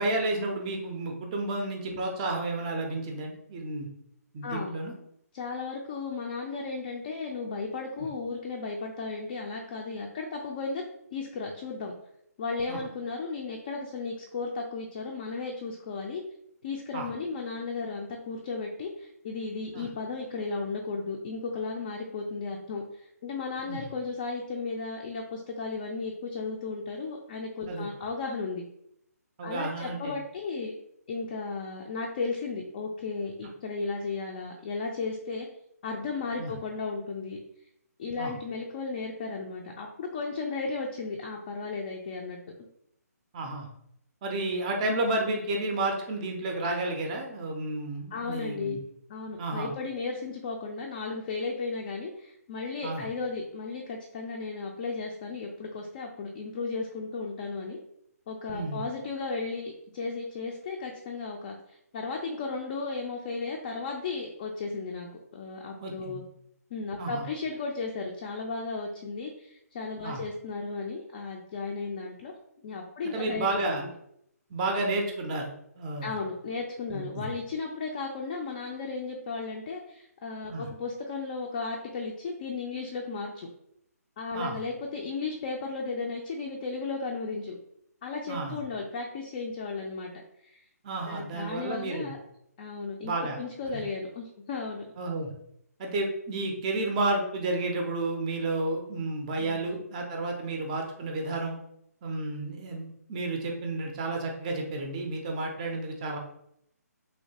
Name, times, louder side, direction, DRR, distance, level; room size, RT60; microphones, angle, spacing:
voice 1, 0.0-3.9 4.3-4.9 12.7-12.8 16.9-17.1 19.7-19.9 23.7-23.9 27.7-27.9 29.4-30.2 36.4-36.5 38.2-38.3 43.3-43.7 44.2-48.8 49.4-49.7 52.8-53.0 58.5-58.8 65.8-66.2 67.0-67.3 70.0-70.2 73.1-73.8 74.5-75.5 75.8-76.1 76.9-77.3 80.5-80.7 84.3-84.6 88.3-88.6 90.8-92.1 93.0-93.4 95.0-95.3 95.8-101.5 102.0-106.2, right 2 dB, 25° right, 2 dB, 0.5 m, -31 dB
voice 2, 4.4-4.7 5.3-10.8 11.1-11.9 12.4-16.2 16.6-28.6 29.4-30.7 31.1-35.5 35.8-37.4 38.0-42.4 48.1-48.8 49.1-57.8 58.3-65.1 65.3-66.2 66.7-72.3 72.6-73.9 76.0-83.5 84.2-87.6 88.0-90.6 91.0-92.2 92.6-94.9 99.4-99.7, left 4 dB, 30° left, 0 dB, 0.4 m, -35 dB
3.1 x 2.8 x 2.8 m, 0.75 s
figure-of-eight pair, 140°, 9 cm